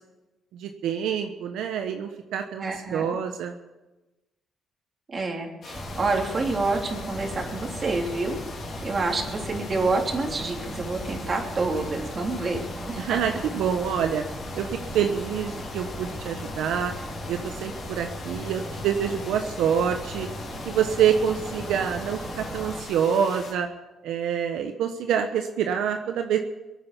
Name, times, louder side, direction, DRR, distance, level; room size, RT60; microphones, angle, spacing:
voice 1, 0.5-3.6 13.0-14.2 14.5-16.9 17.3-20.3 20.7-23.7 24.0-26.4, right 8 dB, 85° right, 5 dB, 1.1 m, -26 dB
voice 2, 2.6-3.1 5.1-13.2, right 3 dB, 35° right, 1 dB, 3.5 m, -28 dB
sound 1, 5.6-23.5, left 4 dB, 50° left, 3.7 m, -41 dB
sound 2, 5.7-22.8, equal, 15° right, 3.6 m, -37 dB
23.5 x 8.8 x 7.0 m, 1.1 s
cardioid pair, 90°, 0 cm